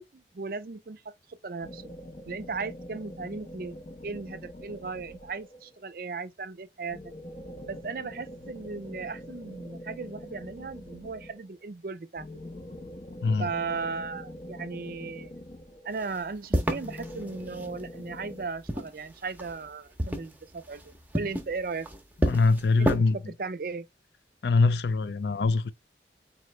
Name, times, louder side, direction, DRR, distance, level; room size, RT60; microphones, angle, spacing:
voice 1, 0.0-1.9 2.3-3.8 4.0-7.1 7.7-12.3 13.4-15.3 15.8-20.8 21.1-21.9 22.8-23.0 23.4-23.9, right 4 dB, 55° right, 0.5 m, -36 dB
sound 1, 1.6-5.8 6.9-11.5 12.2-16.2 16.8-18.5, left 1 dB, 35° left, 0.7 m, -44 dB
sound 2, 15.9-17.8 18.4-19.7 20.0-23.0, equal, 10° right, 0.7 m, -30 dB
voice 2, 22.3-23.2 24.4-25.7, left 3 dB, 75° left, 0.4 m, -23 dB
4.1 x 3.1 x 3.1 m
head